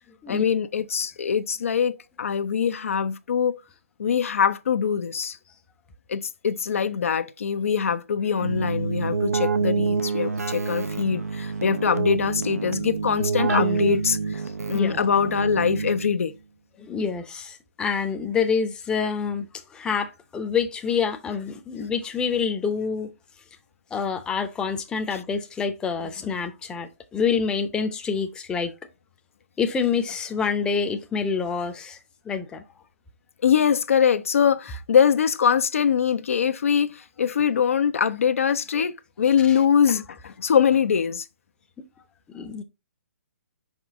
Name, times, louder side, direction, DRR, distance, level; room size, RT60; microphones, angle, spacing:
voice 1, 0.3-3.5 4.0-5.4 6.1-14.4 14.7-16.3 25.1-25.2 33.4-41.3, left 7 dB, 65° left, 0.6 m, -23 dB
Keyboard (musical), 8.4-16.3, right 4 dB, 85° right, 0.6 m, -27 dB
voice 2, 13.5-13.9 14.7-15.0 16.8-23.1 23.9-28.7 29.6-32.0 32.2-32.6 42.3-42.6, left 6 dB, 10° left, 0.7 m, -27 dB
5.1 x 5.1 x 3.6 m
figure-of-eight pair, 135°, 8 cm